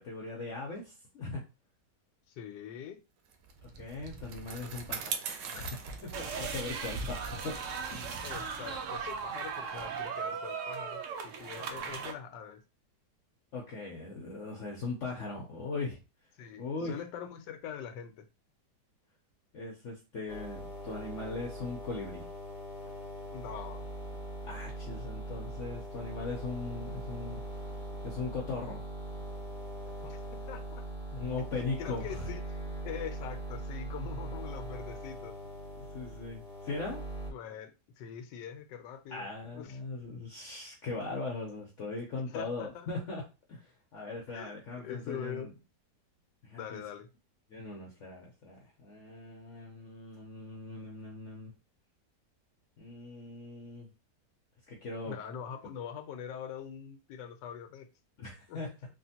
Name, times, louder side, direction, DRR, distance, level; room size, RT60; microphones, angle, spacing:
voice 1, 0.0-1.4 3.6-5.2 5.5-7.6 7.9-8.2 13.5-16.0 16.6-17.0 19.5-22.3 24.4-27.4 28.0-28.8 31.1-32.3 35.8-37.0 39.1-43.2 43.5-45.5 46.4-46.8 47.5-51.5 52.8-53.9 54.7-55.1 58.2-58.7, left 3 dB, 60° left, 0.9 m, -39 dB
voice 2, 2.3-3.0 8.2-12.6 16.4-18.3 23.3-23.9 30.0-30.9 31.6-32.4 32.8-35.4 37.3-37.7 38.0-39.3 39.5-39.8 42.3-42.9 44.3-45.5 46.6-47.1 55.1-57.9 58.5-58.6, left 8 dB, 85° left, 1.2 m, -43 dB
Bicycle, 3.3-10.0, right 6 dB, 90° right, 1.3 m, -43 dB
sound 1, 6.1-12.1, right 6 dB, 70° right, 0.7 m, -38 dB
sound 2, 20.3-37.3, right 1 dB, 30° left, 0.8 m, -41 dB
3.5 x 2.5 x 2.7 m
omnidirectional pair, 1.9 m